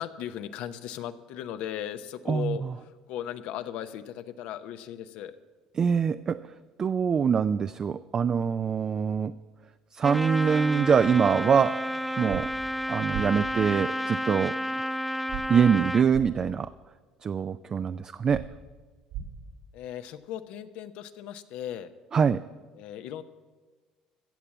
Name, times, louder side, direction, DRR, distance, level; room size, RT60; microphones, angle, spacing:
voice 1, 0.0-5.4 19.7-21.9 22.7-23.2, left 10 dB, 75° left, 10 dB, 0.7 m, -37 dB
voice 2, 2.3-2.7 5.8-6.5 6.8-9.3 9.9-12.5 12.9-14.6 15.5-16.7 17.2-18.5 22.1-22.4, right 6 dB, 35° right, 12 dB, 0.3 m, -24 dB
Trumpet, 10.0-16.1, equal, ahead, 0.8 m, -31 dB
sound 1, 12.3-12.4 13.1-13.2 15.3-15.4 16.1-16.3 18.3-18.4 19.1-19.2, right 11 dB, 85° right, 3.9 m, -35 dB
15.0 x 7.4 x 7.1 m, 1.4 s
supercardioid pair, 95°, 2 cm